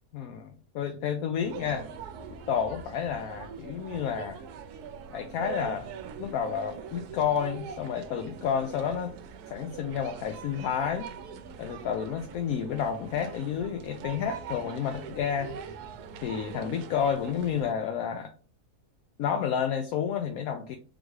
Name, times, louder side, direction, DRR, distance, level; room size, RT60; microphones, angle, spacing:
voice 1, 0.1-1.9 2.5-4.4 5.1-5.9 6.2-9.2 9.5-11.1 11.6-15.5 16.2-18.3 19.2-20.8, left 8 dB, 75° left, 1.0 m, -30 dB
sound 1, 1.4-17.7, right 6 dB, 85° right, 1.1 m, -43 dB
3.9 x 3.1 x 3.4 m
omnidirectional pair, 1.6 m